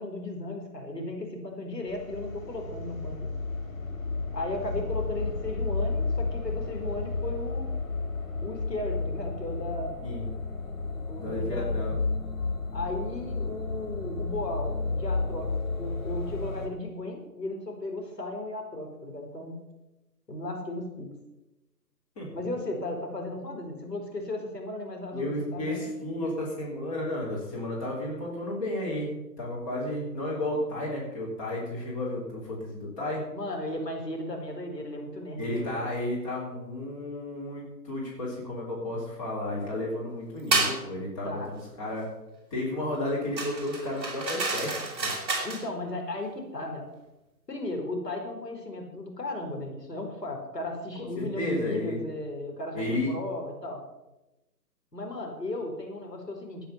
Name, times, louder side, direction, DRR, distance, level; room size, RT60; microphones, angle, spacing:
voice 1, 0.0-3.2 4.3-7.6 8.4-10.0 11.1-11.9 12.7-15.5 15.8-19.6 20.3-21.1 22.3-25.3 25.5-25.9 33.3-35.8 41.2-41.5 45.4-46.9 47.5-53.8 54.9-56.7, left 1 dB, 75° left, 2 dB, 4.6 m, -35 dB
sound 1, 1.9-16.7, left 3 dB, 50° left, 2.9 m, -32 dB
voice 2, 10.0-10.3 11.2-12.0 22.2-22.3 25.1-33.2 35.4-42.1 42.5-45.1 51.0-52.0 52.7-53.1, left 1 dB, 20° left, -5 dB, 3.6 m, -32 dB
sound 2, 40.5-40.8 43.4-45.6, right 3 dB, 10° right, 3.6 m, -29 dB
12.5 x 9.5 x 7.1 m, 0.96 s
figure-of-eight pair, 150°, 50 cm